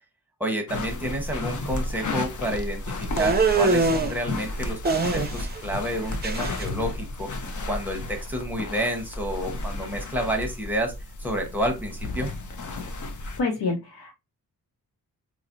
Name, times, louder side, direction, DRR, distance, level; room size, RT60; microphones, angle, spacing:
voice 1, 0.4-10.9 11.2-12.3, equal, 5° right, 2 dB, 0.9 m, -30 dB
sound 1, 0.7-13.4, left 2 dB, 50° left, 0.6 m, -33 dB
sound 2, 3.2-4.1 4.8-5.6 5.8-6.7, right 3 dB, 25° right, 0.5 m, -23 dB
voice 2, 13.4-14.1, left 3 dB, 85° left, 1 dB, 0.7 m, -27 dB
4.0 x 2.0 x 2.5 m, 0.23 s
wide cardioid pair, 105°, 38 cm